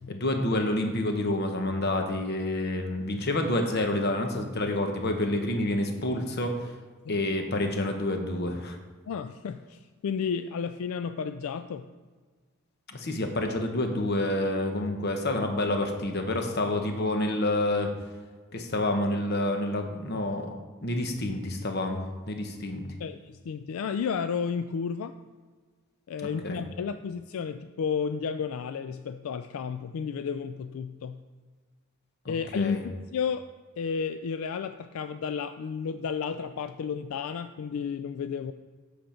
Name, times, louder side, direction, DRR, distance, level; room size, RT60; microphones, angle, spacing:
voice 1, 0.1-6.7 7.1-8.8 12.9-17.9 18.5-20.5 20.8-22.9 26.4-26.6 32.2-32.8, left 1 dB, 50° left, 5 dB, 0.9 m, -28 dB
voice 2, 9.1-11.9 23.0-25.1 26.1-31.2 32.3-33.5 33.8-38.5, left 6 dB, 75° left, 10 dB, 0.3 m, -32 dB
7.7 x 6.8 x 4.4 m, 1.4 s
head